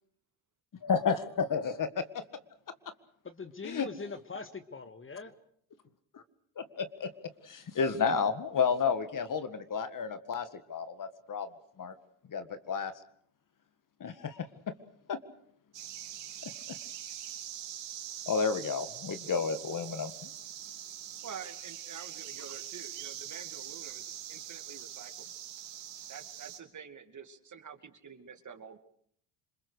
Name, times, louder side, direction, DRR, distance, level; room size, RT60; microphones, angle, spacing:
voice 1, 0.8-2.0 3.6-3.9 6.1-6.2 6.6-7.1 7.4-11.5 11.8-11.9 12.3-12.9 14.0-14.5 15.1-15.2 18.3-20.3, left 6 dB, 40° left, 11 dB, 2.0 m, -31 dB
voice 2, 3.2-5.3, left 4 dB, 25° left, 10 dB, 1.9 m, -42 dB
sound 1, 15.7-26.6, right 11 dB, 60° right, 3.1 m, -43 dB
voice 3, 21.2-25.1 26.1-28.8, right 7 dB, 35° right, 8 dB, 2.5 m, -48 dB
27.5 x 21.0 x 6.5 m, 0.65 s
supercardioid pair, 80°, 48 cm